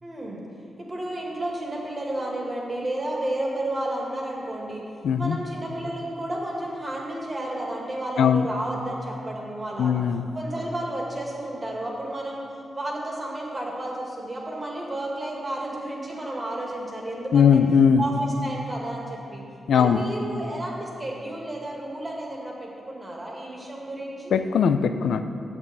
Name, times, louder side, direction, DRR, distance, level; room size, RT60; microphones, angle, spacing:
voice 1, 0.0-0.4 0.8-4.8 5.1-9.9 10.3-12.4 12.7-17.5 18.0-19.4 19.7-24.4, right 1 dB, 25° right, -2 dB, 1.9 m, -32 dB
voice 2, 5.0-5.4 8.2-8.5 9.8-10.3 17.3-18.0 19.7-20.0 24.3-25.2, left 7 dB, 90° left, 9 dB, 0.4 m, -19 dB
7.8 x 7.0 x 8.2 m, 2.6 s
wide cardioid pair, 130°, 0 cm